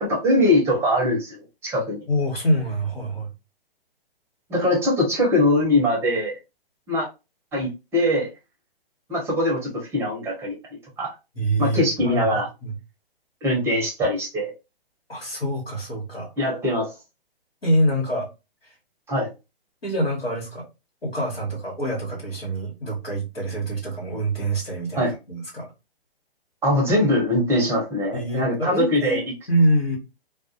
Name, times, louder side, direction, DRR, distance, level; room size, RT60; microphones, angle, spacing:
voice 1, 0.0-2.0 4.5-6.4 6.9-7.1 7.5-8.3 9.1-11.1 11.6-12.5 13.4-14.5 16.4-16.9 19.1-19.3 24.9-25.1 26.6-29.2, left 1 dB, 10° right, -2 dB, 0.6 m, -22 dB
voice 2, 2.1-3.3 11.3-12.7 15.1-16.3 17.6-18.3 18.6-18.7 19.8-20.6 21.0-25.7 28.1-30.0, right 1 dB, 90° left, -4 dB, 1.3 m, -25 dB
2.3 x 2.2 x 2.6 m, 0.26 s
figure-of-eight pair, 130°, 30 cm